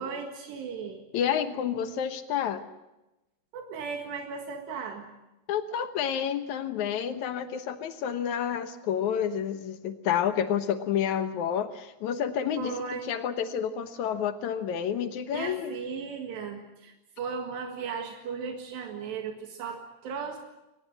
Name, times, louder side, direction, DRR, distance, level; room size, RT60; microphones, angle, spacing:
voice 1, 0.0-1.1 3.5-5.0 12.6-13.1 15.3-20.4, right 6 dB, 80° right, 3 dB, 4.0 m, -36 dB
voice 2, 1.1-2.6 5.5-15.7, left 8 dB, 70° left, 9 dB, 1.8 m, -29 dB
23.0 x 20.0 x 7.7 m, 0.99 s
omnidirectional pair, 4.9 m